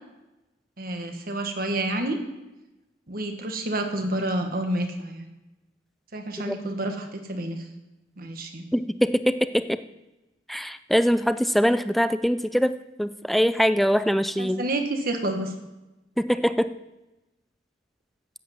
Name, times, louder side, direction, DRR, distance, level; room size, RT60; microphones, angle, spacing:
voice 1, 0.8-2.2 3.1-5.3 6.1-7.6 8.2-8.6 14.4-15.5, right 1 dB, 55° right, 6 dB, 1.5 m, -29 dB
voice 2, 8.7-9.8 10.5-14.7 16.2-16.7, equal, ahead, 12 dB, 0.4 m, -23 dB
11.5 x 7.8 x 7.8 m, 1.0 s
head